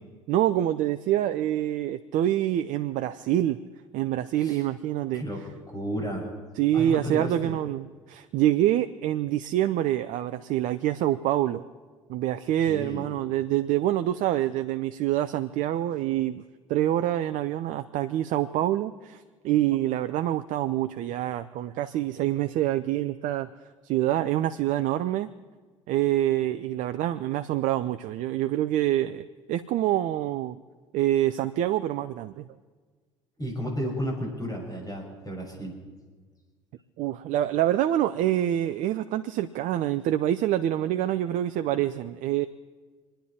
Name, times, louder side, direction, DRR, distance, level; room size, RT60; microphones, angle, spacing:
voice 1, 0.3-3.6 3.9-5.2 6.6-11.6 12.1-16.4 16.7-23.5 23.8-25.3 25.9-30.6 30.9-32.5 37.0-42.5, right 13 dB, 55° right, 10 dB, 0.6 m, -26 dB
voice 2, 5.1-6.3 6.7-7.6 12.7-13.0 33.4-35.7, equal, 20° left, 0 dB, 6.1 m, -33 dB
28.0 x 10.5 x 4.4 m, 1.5 s
figure-of-eight pair, 60°, 16 cm